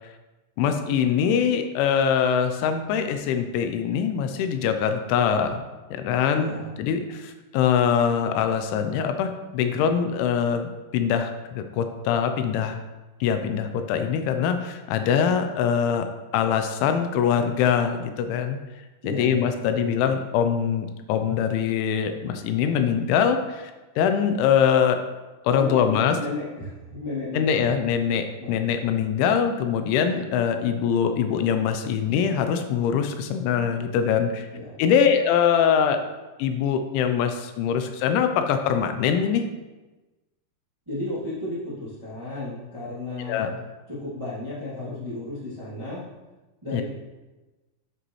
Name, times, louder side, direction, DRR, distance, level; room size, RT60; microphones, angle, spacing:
voice 1, 0.6-5.6 5.9-12.8 13.2-16.0 16.3-18.6 19.0-23.7 24.0-25.0 25.4-26.2 27.3-34.5 34.8-36.0 36.4-39.5 43.3-43.5 46.7-46.8, left 7 dB, 85° left, 7 dB, 3.0 m, -23 dB
voice 2, 6.3-6.7 19.0-20.0 25.5-27.5 28.4-28.6 34.5-34.8 40.8-43.6 43.9-46.0 46.6-46.8, left 2 dB, 20° right, -9 dB, 0.7 m, -34 dB
8.6 x 7.9 x 3.1 m, 1.1 s
omnidirectional pair, 5.4 m